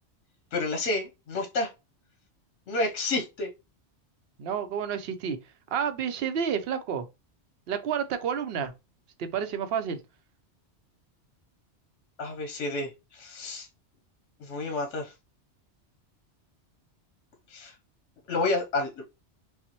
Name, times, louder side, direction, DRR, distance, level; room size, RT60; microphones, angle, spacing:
voice 1, 0.5-1.7 2.7-3.5 12.2-13.7 14.4-15.1 17.5-17.7 18.3-19.1, left 2 dB, 80° left, 1.1 m, -30 dB
voice 2, 4.4-5.4 5.7-7.1 7.7-8.7 9.2-10.0, right 7 dB, 65° right, 0.7 m, -30 dB
5.4 x 2.1 x 2.9 m
omnidirectional pair, 1.2 m